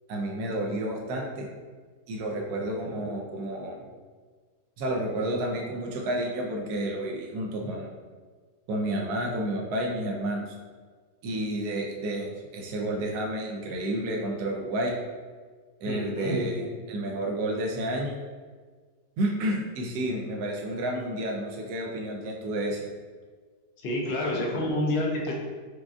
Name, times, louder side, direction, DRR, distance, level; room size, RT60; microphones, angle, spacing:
voice 1, 0.1-1.5 2.1-3.9 4.8-7.9 8.7-10.5 11.2-14.9 15.8-18.2 19.2-22.9, right 1 dB, 75° right, -1 dB, 1.1 m, -30 dB
voice 2, 15.9-16.4 23.8-25.3, left 1 dB, 90° left, -1 dB, 0.5 m, -28 dB
4.7 x 2.3 x 2.5 m, 1.5 s
omnidirectional pair, 1.8 m